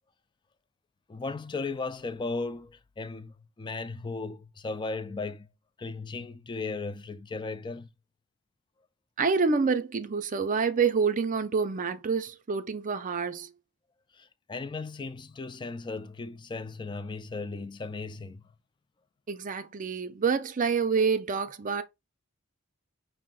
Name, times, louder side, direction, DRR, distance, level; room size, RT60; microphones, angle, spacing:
voice 1, 1.1-5.5 5.8-7.9 14.1-18.5, left 3 dB, 20° left, 0.3 m, -36 dB
voice 2, 9.2-13.5 19.3-21.8, right 5 dB, 35° right, 0.5 m, -27 dB
5.5 x 2.1 x 3.7 m
head